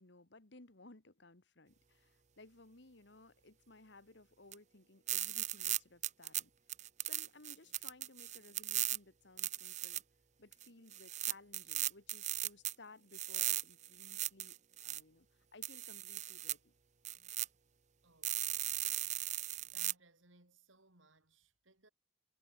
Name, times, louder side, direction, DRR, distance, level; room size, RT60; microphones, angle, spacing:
voice 1, 0.0-6.5 7.0-10.0 10.4-14.6 14.8-15.3 15.5-16.7, left 2 dB, 55° left, 1.8 m, -59 dB
sound 1, 4.5-4.6 5.1-6.4 6.7-9.0 9.4-10.0 10.5-10.6 10.9-12.7 13.1-15.0 15.6-16.5 17.0-17.5 18.2-19.9, right 13 dB, 35° right, 0.9 m, -37 dB
voice 2, 18.0-19.1 19.7-21.9, right 2 dB, 70° right, 5.4 m, -67 dB
head